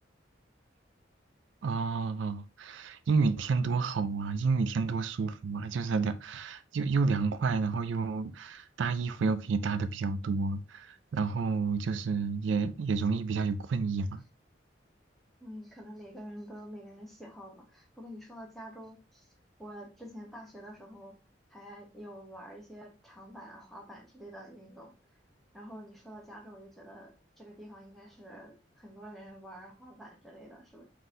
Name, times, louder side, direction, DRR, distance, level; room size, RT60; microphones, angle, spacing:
voice 1, 1.6-14.2, right 4 dB, 80° right, 0.4 m, -30 dB
voice 2, 15.4-19.3 19.6-21.2 21.5-25.2 25.5-30.9, equal, ahead, 1.0 m, -48 dB
3.9 x 2.8 x 3.7 m
head